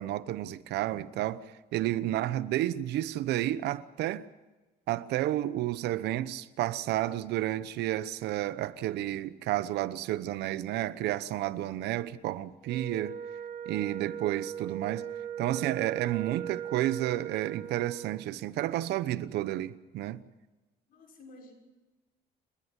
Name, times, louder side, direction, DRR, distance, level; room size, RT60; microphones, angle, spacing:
voice 1, 0.0-1.4 1.7-4.3 4.9-13.2 13.7-15.1 15.4-20.2, right 14 dB, 80° right, 1.0 m, -31 dB
Wind instrument woodwind instrument, 12.6-18.3, right 9 dB, 65° right, 1.7 m, -39 dB
voice 2, 20.9-21.5, left 2 dB, 60° left, 6.1 m, -52 dB
29.5 x 11.0 x 9.9 m
cardioid pair, 110°, 17 cm